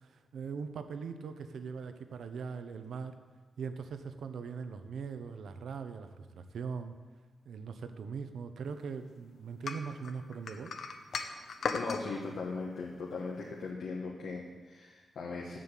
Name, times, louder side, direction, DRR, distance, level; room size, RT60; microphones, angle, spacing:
voice 1, 0.0-3.1 3.6-6.9 7.5-10.7, right 5 dB, 85° right, 9 dB, 0.7 m, -41 dB
sound 1, 9.7-12.1, left 5 dB, 70° left, 0.9 m, -36 dB
voice 2, 11.7-15.6, left 4 dB, 85° left, -2 dB, 1.3 m, -39 dB
8.3 x 7.5 x 7.4 m, 1.4 s
wide cardioid pair, 125°, 0 cm